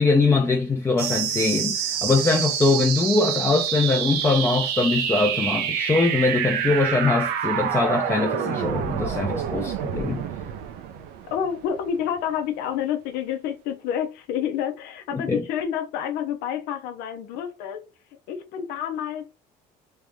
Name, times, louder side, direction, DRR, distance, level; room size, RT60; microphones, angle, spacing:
voice 1, 0.0-10.2 15.1-15.4, left 3 dB, 15° left, 0.6 m, -22 dB
sound 1, 1.0-12.0, right 9 dB, 85° right, 0.7 m, -27 dB
voice 2, 11.3-17.9 18.3-19.4, left 9 dB, 85° left, 0.8 m, -29 dB
3.3 x 2.9 x 3.5 m
cardioid pair, 130°, 16 cm